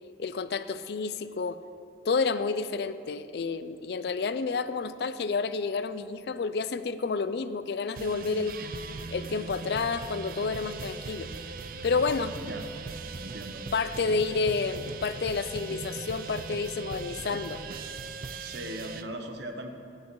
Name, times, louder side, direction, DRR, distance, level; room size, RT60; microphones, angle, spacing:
voice 1, 0.2-1.6 2.0-8.5 9.1-11.3 11.8-12.3 13.7-17.6, left 4 dB, 65° left, 13 dB, 0.4 m, -30 dB
sound 1, 7.9-19.0, right 4 dB, 50° right, 0.4 m, -39 dB
voice 2, 12.4-12.7 13.2-13.6 14.2-14.3 18.4-19.7, right 1 dB, 80° right, 5 dB, 1.0 m, -39 dB
16.5 x 9.5 x 3.1 m, 2.5 s
head